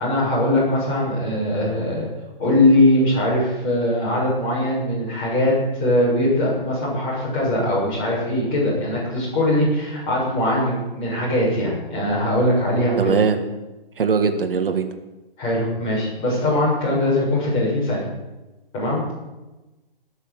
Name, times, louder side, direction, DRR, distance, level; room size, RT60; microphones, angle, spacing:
voice 1, 0.0-2.1 2.4-13.1 15.4-18.0 18.7-19.1, left 1 dB, 20° left, -6 dB, 7.0 m, -21 dB
voice 2, 13.0-13.4 14.0-14.9, right 5 dB, 65° right, 7 dB, 1.7 m, -20 dB
19.5 x 6.8 x 7.9 m, 1.1 s
hypercardioid pair, 165°, 29 cm